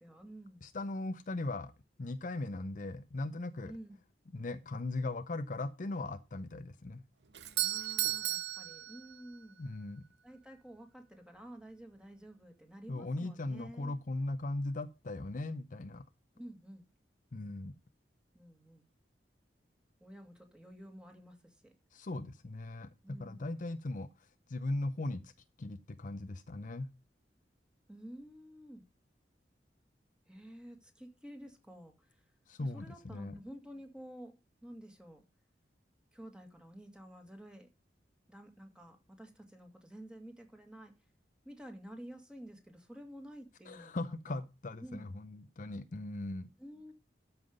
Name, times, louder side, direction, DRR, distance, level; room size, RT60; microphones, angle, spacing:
voice 1, 0.0-0.6 3.6-4.0 7.6-9.6 10.2-14.0 16.3-16.8 18.3-18.9 20.0-21.7 23.0-23.5 27.9-28.8 30.3-32.2 32.6-34.3 34.6-35.2 36.1-37.7 38.3-40.9 41.4-44.4 44.8-45.1 46.6-46.9, right 1 dB, 5° right, 4 dB, 2.1 m, -51 dB
voice 2, 0.6-1.7 2.0-3.7 4.3-7.0 9.6-10.0 12.9-16.0 17.3-17.7 21.9-24.1 24.5-25.3 25.6-26.9 32.5-33.4 43.7-46.5, left 2 dB, 50° left, 10 dB, 0.6 m, -38 dB
Doorbell, 7.3-9.5, right 14 dB, 70° right, 0.7 m, -35 dB
13.0 x 5.7 x 5.3 m, 0.28 s
head